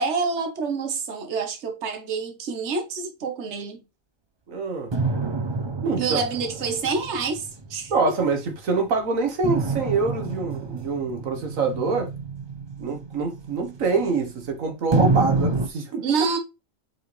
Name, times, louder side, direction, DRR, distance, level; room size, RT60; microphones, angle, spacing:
voice 1, 0.0-3.8 6.0-7.9 16.0-16.4, right 4 dB, 60° right, 1.5 m, -27 dB
voice 2, 4.5-4.9 5.8-6.2 7.9-12.1 12.8-16.0, right 4 dB, 90° right, 1.7 m, -25 dB
sound 1, 4.9-8.6 9.4-14.4 14.9-15.7, right 3 dB, 25° right, 0.6 m, -28 dB
7.8 x 4.9 x 3.2 m
omnidirectional pair, 1.4 m